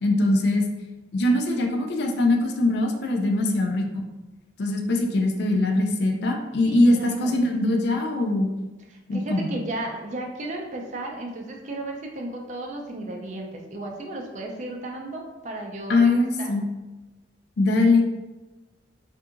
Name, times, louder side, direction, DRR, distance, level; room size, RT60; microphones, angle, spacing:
voice 1, 0.0-0.6 1.1-4.0 4.6-8.5 9.1-9.5 15.9-16.6 17.6-18.0, left 2 dB, 60° left, 2 dB, 0.4 m, -22 dB
voice 2, 6.6-7.4 8.9-16.5, right 1 dB, 40° right, 1 dB, 0.4 m, -34 dB
2.7 x 2.5 x 2.4 m, 1.1 s
head